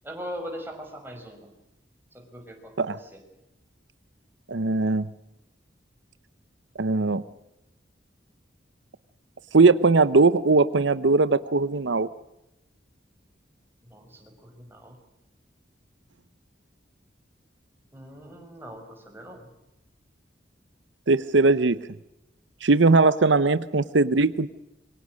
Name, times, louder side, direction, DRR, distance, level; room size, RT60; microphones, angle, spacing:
voice 1, 0.0-1.5 2.1-3.2 13.8-15.0 17.9-19.5, equal, 10° right, 2 dB, 5.6 m, -41 dB
voice 2, 4.5-5.1 6.8-7.2 9.5-12.1 21.1-21.8 22.6-24.5, right 3 dB, 85° right, 15 dB, 0.8 m, -20 dB
26.5 x 23.5 x 6.4 m, 0.92 s
head